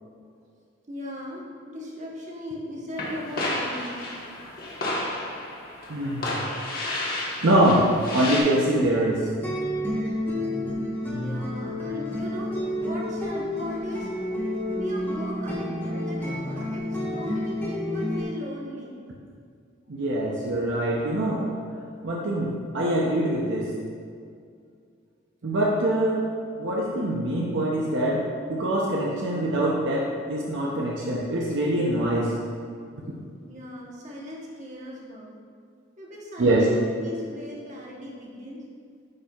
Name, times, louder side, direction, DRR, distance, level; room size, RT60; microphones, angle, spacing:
voice 1, 0.9-4.2 9.6-9.8 11.2-12.5 12.8-14.1 14.8-18.9 33.4-35.3 36.0-38.6, equal, 35° right, -4 dB, 1.1 m, -38 dB
sound 1, 3.0-8.4, left 1 dB, 45° left, 1.1 m, -32 dB
voice 2, 5.9-6.4 7.4-9.3 19.9-21.5 22.0-23.7 25.4-26.2 26.6-32.3 36.4-36.7, right 1 dB, 60° right, -3 dB, 0.6 m, -24 dB
sound 2, 9.4-18.2, left 1 dB, 10° left, 1.2 m, -29 dB
9.7 x 4.4 x 2.4 m, 2.3 s
head